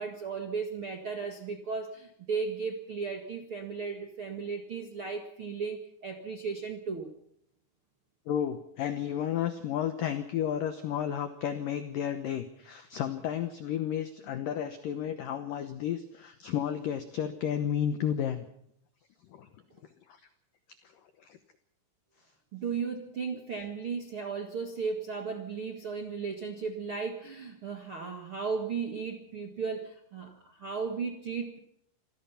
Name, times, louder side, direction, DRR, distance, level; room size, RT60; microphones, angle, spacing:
voice 1, 0.0-7.1 22.5-31.6, right 5 dB, 75° right, 4 dB, 1.2 m, -35 dB
voice 2, 8.3-18.5 19.3-19.5 20.1-20.2 21.2-21.4, left 9 dB, 90° left, 9 dB, 1.9 m, -32 dB
26.5 x 17.5 x 5.8 m, 0.73 s
omnidirectional pair, 5.6 m